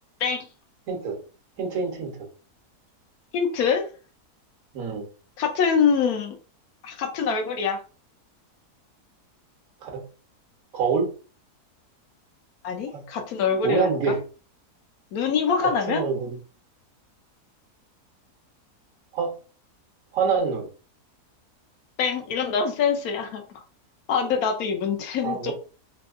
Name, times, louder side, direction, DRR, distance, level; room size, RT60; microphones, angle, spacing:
voice 1, 0.9-1.2 1.6-2.2 4.7-5.0 9.8-10.0 10.7-11.1 12.9-13.0 13.6-14.2 15.6-16.4 19.1-19.3 20.1-20.7 25.2-25.5, right 5 dB, 60° right, 1 dB, 1.3 m, -26 dB
voice 2, 3.3-3.8 5.4-6.4 6.8-7.8 12.6-14.1 15.1-16.0 22.0-23.4 24.1-25.5, left 6 dB, 70° left, 5 dB, 1.1 m, -24 dB
3.4 x 2.8 x 2.4 m, 0.36 s
omnidirectional pair, 1.7 m